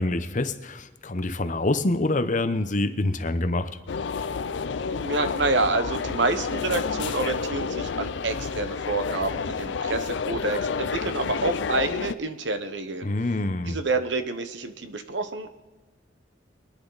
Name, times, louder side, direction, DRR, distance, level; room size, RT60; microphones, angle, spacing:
voice 1, 0.0-3.7 13.0-13.8, left 2 dB, 45° left, 10 dB, 0.8 m, -26 dB
sound 1, 3.9-12.1, left 5 dB, 70° left, 0.5 m, -30 dB
voice 2, 4.9-13.1 13.7-15.5, right 3 dB, 70° right, 10 dB, 1.1 m, -28 dB
24.0 x 10.0 x 4.1 m, 1.2 s
head